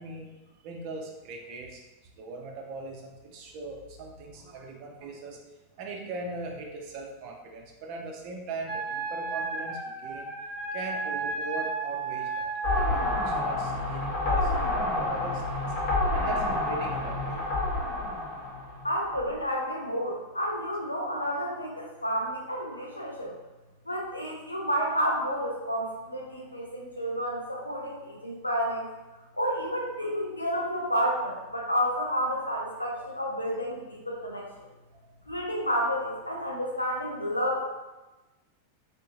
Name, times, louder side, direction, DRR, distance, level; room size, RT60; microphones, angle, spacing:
voice 1, 0.0-1.8 2.1-15.8 16.1-17.5 30.1-30.3 33.0-33.1, right 3 dB, 45° right, 1 dB, 0.6 m, -40 dB
Wind instrument woodwind instrument, 8.6-13.5, right 4 dB, 10° right, 1.1 m, -33 dB
sound 1, 12.6-19.4, left 2 dB, 45° left, 0.9 m, -29 dB
voice 2, 18.8-23.3 23.9-28.9 29.4-34.5 35.3-37.6, equal, 85° left, -2 dB, 0.7 m, -30 dB
3.5 x 2.7 x 2.7 m, 1.1 s
figure-of-eight pair, 90°, 0 cm